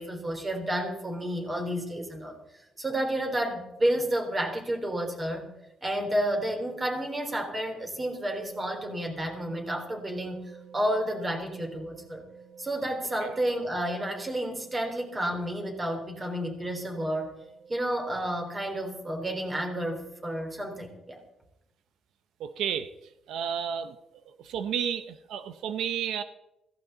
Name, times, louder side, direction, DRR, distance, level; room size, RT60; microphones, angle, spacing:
voice 1, 0.0-2.4 2.8-5.5 5.8-10.4 10.7-12.2 12.6-17.4 17.7-21.2, right 1 dB, 20° right, 3 dB, 3.5 m, -31 dB
sound 1, 8.4-19.0, right 6 dB, 50° right, 4.4 m, -51 dB
voice 2, 22.4-22.9 23.3-23.9 24.4-26.2, right 8 dB, 90° right, 11 dB, 0.7 m, -31 dB
16.0 x 15.5 x 3.9 m, 0.89 s
cardioid pair, 125°, 0 cm